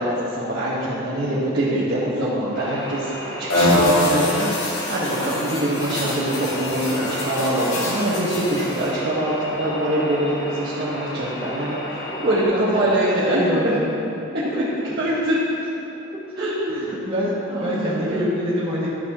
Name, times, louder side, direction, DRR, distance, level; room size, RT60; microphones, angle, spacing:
voice 1, 0.0-13.7 14.5-14.6 15.0-15.4 16.4-16.9 17.5-18.3, right 1 dB, 50° right, -11 dB, 1.6 m, -24 dB
sound 1, 2.5-12.4, left 1 dB, 40° left, 1.9 m, -32 dB
sound 2, 3.5-8.9, left 1 dB, 85° left, 1.8 m, -24 dB
voice 2, 12.3-14.1 14.5-14.7 15.0-15.1 16.1-18.9, equal, 25° right, -8 dB, 1.6 m, -26 dB
12.5 x 6.8 x 3.7 m, 2.9 s
head